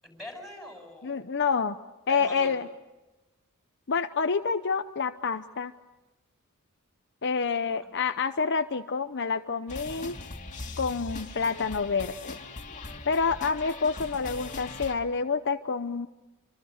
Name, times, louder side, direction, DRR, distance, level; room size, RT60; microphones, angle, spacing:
voice 1, 0.0-1.2 2.1-2.6 7.8-7.9 9.8-10.1, left 1 dB, ahead, 2 dB, 7.9 m, -44 dB
voice 2, 1.0-1.8 2.1-2.7 3.9-5.7 7.2-10.2 10.8-12.4 13.1-16.1, left 5 dB, 55° left, 8 dB, 0.8 m, -28 dB
sound 1, 9.7-14.9, left 3 dB, 35° left, 2.5 m, -40 dB
27.5 x 25.5 x 6.6 m, 1.0 s
head